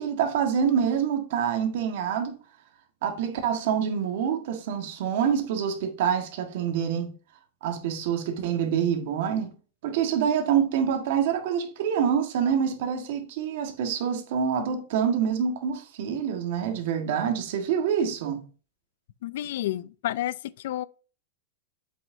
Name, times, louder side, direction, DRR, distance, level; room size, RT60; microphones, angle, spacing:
voice 1, 0.0-2.4 3.0-7.1 7.6-9.5 9.8-18.4, right 8 dB, 60° right, 1.6 m, -26 dB
voice 2, 19.2-20.9, left 13 dB, 65° left, 0.4 m, -30 dB
7.6 x 6.3 x 2.7 m
supercardioid pair, 155°, 0 cm